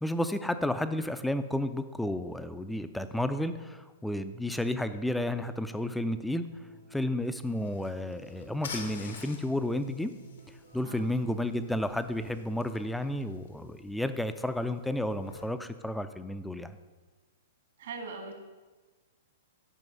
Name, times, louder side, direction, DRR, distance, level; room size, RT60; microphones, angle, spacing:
voice 1, 0.0-6.4 6.9-10.1 10.7-16.8, left 1 dB, 5° left, 10 dB, 0.4 m, -32 dB
sound 1, 4.9-12.8, right 2 dB, 85° right, 3.0 m, -55 dB
sound 2, 7.2-15.5, left 4 dB, 70° left, 1.2 m, -48 dB
voice 2, 17.8-18.4, right 4 dB, 65° right, 3 dB, 1.8 m, -41 dB
9.2 x 5.3 x 5.3 m, 1.3 s
figure-of-eight pair, 110°, 0 cm